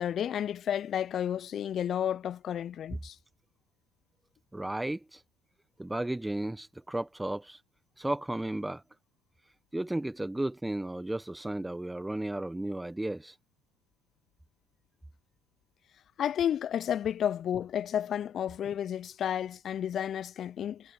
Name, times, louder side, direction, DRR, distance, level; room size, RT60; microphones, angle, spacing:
voice 1, 0.0-3.2 16.2-20.9, left 9 dB, 45° left, 0.6 m, -31 dB
voice 2, 4.5-5.2 5.8-7.6 8.0-8.8 9.7-13.4, right 1 dB, 10° right, 1.2 m, -34 dB
hypercardioid pair, 65°, 0 cm